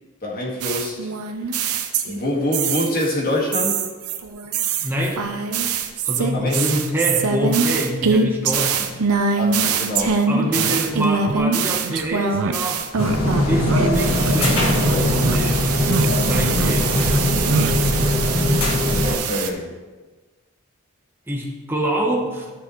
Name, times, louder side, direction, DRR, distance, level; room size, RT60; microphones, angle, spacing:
voice 1, 0.2-1.1 2.1-3.8 6.3-6.5 9.4-10.2 10.5-10.7 19.2-19.7, left 1 dB, 40° left, -4 dB, 2.0 m, -25 dB
sound 1, 0.6-3.1 3.5-13.6 13.9-19.5, right 5 dB, 90° right, 0.8 m, -23 dB
voice 2, 4.8-5.3 6.0-9.0 10.3-12.8 13.5-15.7 16.2-16.9 21.3-22.5, right 1 dB, 10° right, -1 dB, 1.2 m, -25 dB
sound 2, 11.3-11.4 11.8-12.0 12.3-12.5 12.9-13.2 13.6-13.9 14.2-14.5 14.8-15.4 15.7-16.1 16.3-16.7 17.1-17.7, right 6 dB, 60° right, 0.3 m, -26 dB
sound 3, 13.0-19.2, left 1 dB, 75° left, 1.7 m, -20 dB
13.5 x 6.2 x 3.2 m, 1.3 s
head